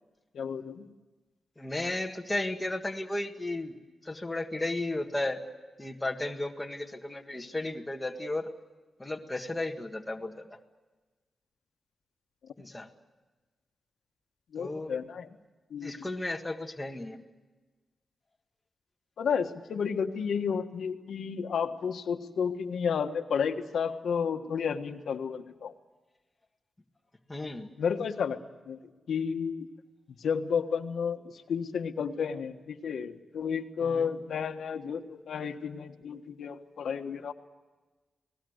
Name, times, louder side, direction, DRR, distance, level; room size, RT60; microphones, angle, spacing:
voice 1, 0.3-0.8 14.5-15.3 15.7-16.1 19.2-25.7 27.8-28.4 28.7-28.8 29.1-29.7 30.2-37.3, left 6 dB, 80° left, 5 dB, 1.5 m, -32 dB
voice 2, 1.6-3.7 4.1-5.4 5.8-8.5 9.0-10.4 12.6-12.9 14.6-14.9 15.8-17.2 27.3-27.7 33.8-34.1, left 2 dB, 10° left, 2 dB, 1.8 m, -34 dB
29.5 x 19.5 x 8.1 m, 1.3 s
wide cardioid pair, 170°, 0 cm